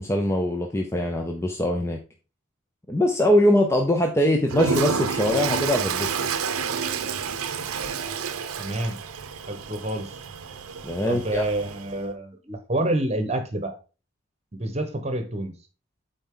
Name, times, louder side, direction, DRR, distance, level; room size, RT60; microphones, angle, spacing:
voice 1, 0.0-2.0 2.9-6.2 10.8-11.4, left 1 dB, 10° left, 2 dB, 0.6 m, -22 dB
Toilet flush, 4.5-12.0, right 6 dB, 85° right, 0.7 m, -29 dB
voice 2, 8.6-9.0 9.5-10.2 11.1-13.7 14.5-15.5, right 1 dB, 30° right, 7 dB, 1.1 m, -28 dB
8.9 x 4.2 x 3.8 m, 0.34 s
head